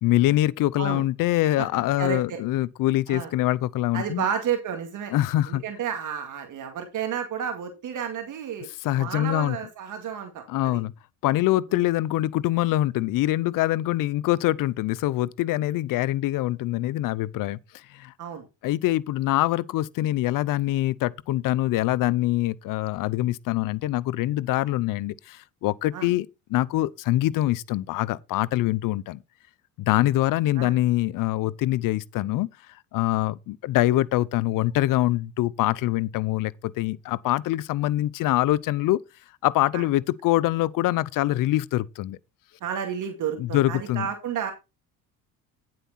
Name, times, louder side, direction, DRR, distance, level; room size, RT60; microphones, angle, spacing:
voice 1, 0.0-4.3 5.1-5.6 8.8-9.6 10.5-10.9 11.2-17.6 17.9-18.1 18.6-29.2 29.8-32.5 32.9-39.0 39.4-42.2 43.4-44.1, left 15 dB, 70° left, 0.7 m, -24 dB
voice 2, 2.0-2.4 3.1-3.3 3.9-5.1 5.5-8.7 8.9-10.8 11.7-11.8 18.2-18.4 25.9-26.1 30.6-30.8 39.7-39.8 42.6-44.5, right 8 dB, 60° right, 2.3 m, -31 dB
9.4 x 7.8 x 4.1 m
supercardioid pair, 85°, 34 cm